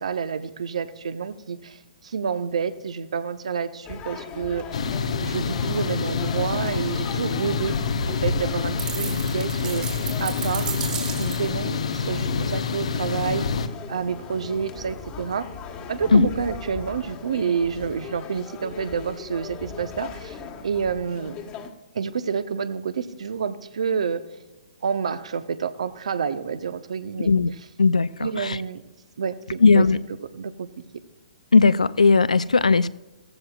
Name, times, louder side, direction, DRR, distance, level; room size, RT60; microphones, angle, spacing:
voice 1, 0.0-4.6 5.2-7.8 8.1-9.9 10.2-10.7 11.2-13.5 13.9-15.5 15.9-21.3 21.9-24.2 24.8-27.3 28.2-28.8 29.2-29.9 30.3-30.7, right 6 dB, 65° right, 11 dB, 1.0 m, -28 dB
sound 1, 3.8-21.7, left 5 dB, 25° left, 1.5 m, -39 dB
sound 2, 4.7-13.7, left 5 dB, 60° left, 1.0 m, -27 dB
sound 3, 8.8-11.6, right 8 dB, 20° right, 1.8 m, -34 dB
voice 2, 27.8-28.6 29.6-30.0 31.5-32.9, left 4 dB, 80° left, 16 dB, 0.5 m, -17 dB
16.5 x 14.5 x 2.5 m, 1.1 s
figure-of-eight pair, 125°, 4 cm